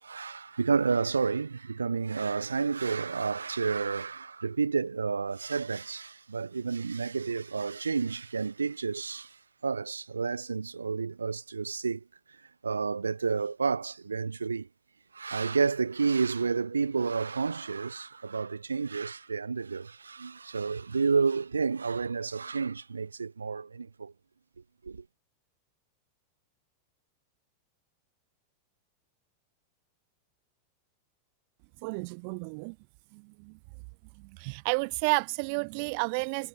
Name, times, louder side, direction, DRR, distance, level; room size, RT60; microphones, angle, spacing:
voice 1, 0.0-12.0 12.6-14.7 15.1-24.1 24.8-25.0, right 5 dB, 75° right, 7.2 m, -30 dB
voice 2, 31.8-32.8 33.1-33.6 34.3-36.5, right 36 dB, 45° right, 6.2 m, -31 dB
figure-of-eight pair, 90°, 0 cm